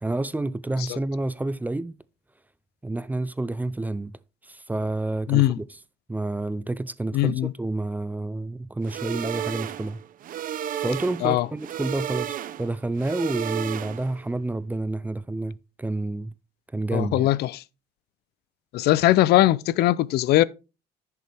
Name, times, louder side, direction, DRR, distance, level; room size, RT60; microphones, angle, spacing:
voice 1, 0.0-2.0 2.8-4.2 4.4-5.6 6.1-10.0 10.8-16.3 16.7-17.3, right 2 dB, 10° right, 0.4 m, -29 dB
voice 2, 7.1-7.5 11.2-11.5 16.9-17.6 18.7-20.4, left 15 dB, 75° left, 0.5 m, -20 dB
sound 1, 8.8-14.2, right 10 dB, 55° right, 0.7 m, -33 dB
10.5 x 6.7 x 3.4 m
cardioid pair, 110°, 17 cm